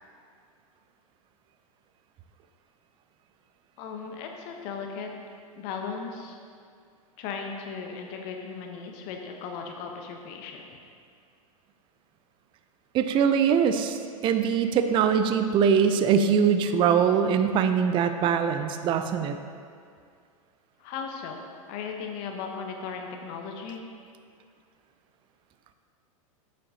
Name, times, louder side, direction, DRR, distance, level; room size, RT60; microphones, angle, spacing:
voice 1, 3.8-5.1 5.5-6.4 7.2-10.7 20.8-23.8, left 5 dB, 45° left, 2 dB, 0.9 m, -37 dB
voice 2, 12.9-19.4, right 7 dB, 25° right, 8 dB, 0.4 m, -22 dB
8.5 x 7.6 x 2.8 m, 2.2 s
hypercardioid pair, 100°, 19 cm